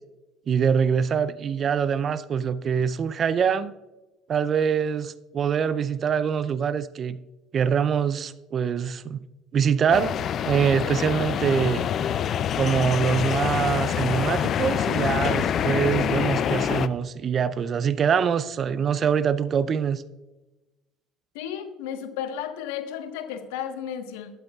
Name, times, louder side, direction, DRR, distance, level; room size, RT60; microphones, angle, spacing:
voice 1, 0.5-3.7 4.3-7.2 7.5-9.2 9.5-10.1 10.5-11.8 12.6-20.0, right 7 dB, 45° right, 15 dB, 0.5 m, -24 dB
sound 1, 9.9-16.9, left 9 dB, 50° left, 0.5 m, -26 dB
voice 2, 21.3-24.3, left 9 dB, 75° left, 7 dB, 1.3 m, -33 dB
12.5 x 12.5 x 2.4 m, 1.1 s
hypercardioid pair, 70°, 0 cm